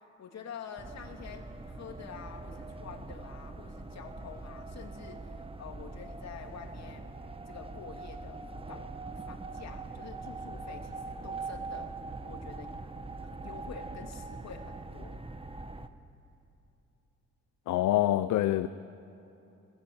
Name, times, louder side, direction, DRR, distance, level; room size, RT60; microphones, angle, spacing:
voice 1, 0.2-7.1 7.5-8.4 8.7-11.9 12.2-12.8 13.2-15.2, left 6 dB, 60° left, 2.9 m, -47 dB
sound 1, 0.8-15.9, right 3 dB, 20° right, 1.2 m, -42 dB
voice 2, 17.7-18.7, left 14 dB, 75° left, 0.7 m, -26 dB
21.0 x 20.5 x 8.9 m
cardioid pair, 90°, 30 cm